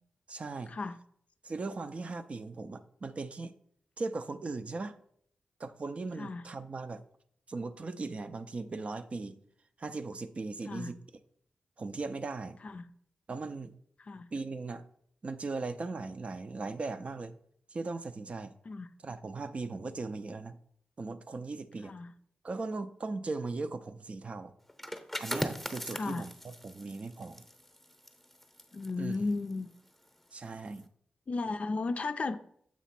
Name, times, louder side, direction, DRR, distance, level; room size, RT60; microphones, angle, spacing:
voice 1, 0.3-0.7 1.4-3.5 4.0-5.0 5.6-7.0 7.5-9.4 9.8-11.0 11.8-12.6 13.3-13.7 14.3-14.9 15.2-17.3 17.7-18.5 19.0-20.6 21.0-22.0 22.4-24.5 25.2-27.5 29.0-29.3 30.3-30.9, right 3 dB, 45° right, 10 dB, 0.5 m, -38 dB
sound 1, 24.7-30.2 30.5-30.8, equal, 5° left, 0.8 m, -41 dB
voice 2, 28.7-29.7 31.3-32.4, left 3 dB, 50° left, 10 dB, 0.4 m, -34 dB
7.3 x 3.0 x 5.8 m, 0.66 s
cardioid pair, 70°, 3 cm